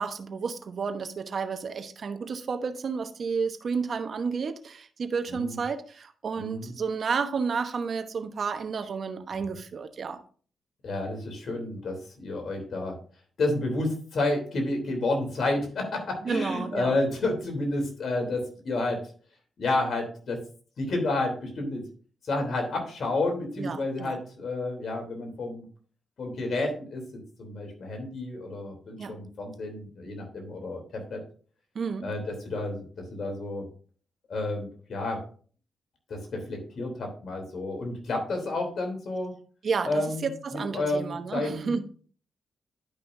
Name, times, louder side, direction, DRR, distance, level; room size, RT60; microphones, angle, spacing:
voice 1, 0.0-10.2 16.2-17.0 23.6-24.2 29.0-29.2 31.7-32.1 39.6-41.8, right 5 dB, 60° right, 0.9 m, -31 dB
voice 2, 5.3-5.6 6.4-6.7 10.8-13.0 13.4-19.0 19.6-20.4 20.8-21.8 22.2-25.7 26.2-31.2 32.0-33.6 34.3-35.2 36.1-39.3 39.8-41.7, left 2 dB, 65° left, 3.2 m, -30 dB
11.5 x 5.7 x 2.6 m
cardioid pair, 60°, 0 cm